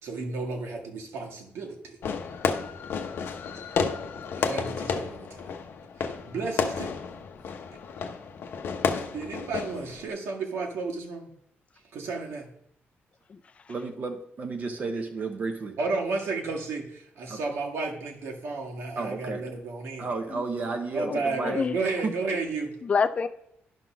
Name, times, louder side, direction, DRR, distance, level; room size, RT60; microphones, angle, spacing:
voice 1, 0.0-2.0 4.4-5.5 6.0-6.9 9.1-11.3 11.9-12.5 15.8-20.1 20.9-22.7, right 3 dB, 90° right, 0 dB, 1.7 m, -32 dB
Fireworks, 2.0-10.1, left 5 dB, 65° left, 0.7 m, -31 dB
voice 2, 13.7-15.8 17.3-17.4 19.0-19.4 20.0-21.6 22.0-22.1, right 3 dB, 40° right, 5 dB, 0.7 m, -32 dB
voice 3, 21.0-21.8 22.8-23.3, left 5 dB, 30° left, 10 dB, 0.4 m, -27 dB
11.0 x 3.9 x 6.0 m, 0.75 s
wide cardioid pair, 175°, 4 cm